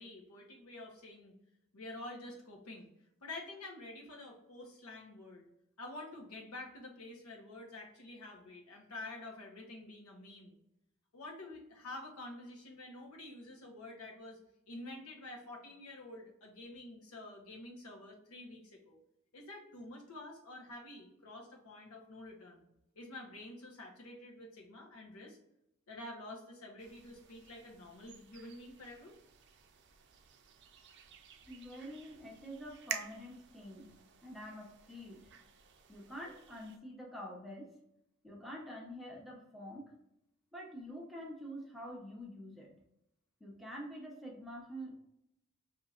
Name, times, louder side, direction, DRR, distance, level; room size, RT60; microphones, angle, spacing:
voice 1, 0.0-1.4 1.7-2.9 3.2-5.5 5.8-10.5 11.1-14.4 14.7-19.0 19.3-22.6 22.9-25.4 25.9-29.1, left 2 dB, 85° left, -1 dB, 1.0 m, -48 dB
sound 1, 26.8-36.8, right 8 dB, 55° right, 0.4 m, -50 dB
voice 2, 31.5-35.3 35.9-37.7 38.2-39.9 40.5-42.7 43.4-45.0, equal, ahead, -2 dB, 0.8 m, -47 dB
5.4 x 2.8 x 2.4 m, 0.82 s
head